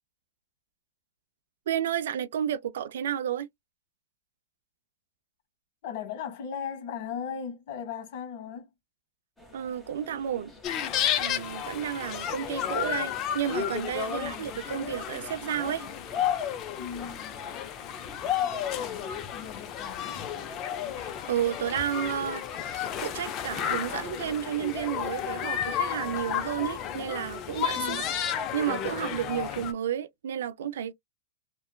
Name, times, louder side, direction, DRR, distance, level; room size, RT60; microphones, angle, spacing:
voice 1, 1.7-3.5 9.5-10.5 11.2-15.8 21.0-22.4 23.0-28.0 28.5-30.9, right 9 dB, 80° right, 0.4 m, -31 dB
voice 2, 5.8-8.7 14.1-14.6 16.8-17.5 18.7-20.3 27.7-28.1, left 7 dB, 60° left, 1.3 m, -38 dB
sound 1, 9.4-20.0, left 2 dB, 5° left, 1.0 m, -52 dB
sound 2, 10.6-29.7, left 9 dB, 35° left, 0.5 m, -32 dB
3.0 x 2.1 x 2.3 m
hypercardioid pair, 135°, 0 cm